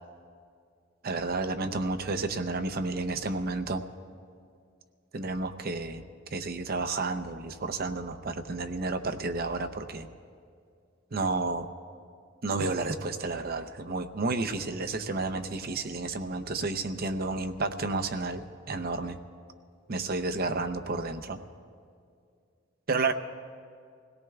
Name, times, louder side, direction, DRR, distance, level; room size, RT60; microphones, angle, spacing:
voice 1, 1.0-3.8 5.1-6.0 6.3-10.1 11.1-11.7 12.4-19.2 19.9-21.4 22.9-23.1, right 3 dB, 50° right, 8 dB, 0.7 m, -31 dB
26.0 x 17.5 x 2.4 m, 2.3 s
head